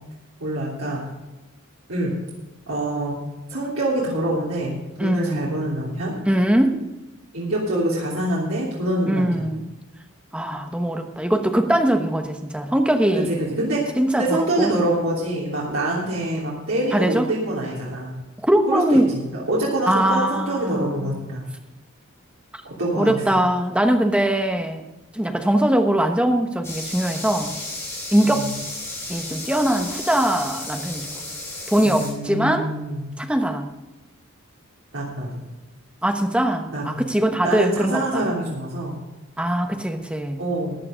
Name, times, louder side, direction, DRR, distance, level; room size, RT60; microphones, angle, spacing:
voice 1, 0.4-1.0 1.9-2.1 2.7-3.2 3.5-6.1 7.3-9.5 13.1-13.8 14.2-18.2 18.7-21.5 22.6-23.4 28.2-28.5 31.8-33.0 34.9-35.5 36.7-37.0 37.4-39.0 40.4-40.9, right 1 dB, 75° right, -5 dB, 3.1 m, -25 dB
voice 2, 5.0-5.5 6.3-6.8 9.1-9.6 10.3-13.3 14.0-14.7 16.9-17.3 18.4-19.1 19.9-21.2 23.0-24.8 25.1-27.6 28.1-28.5 29.1-31.1 31.7-32.7 33.2-33.7 36.0-38.2 39.4-40.4, right 1 dB, 5° right, 5 dB, 1.0 m, -21 dB
sound 1, 26.6-32.1, left 2 dB, 10° left, 3.6 m, -33 dB
14.0 x 9.7 x 5.1 m, 1.1 s
head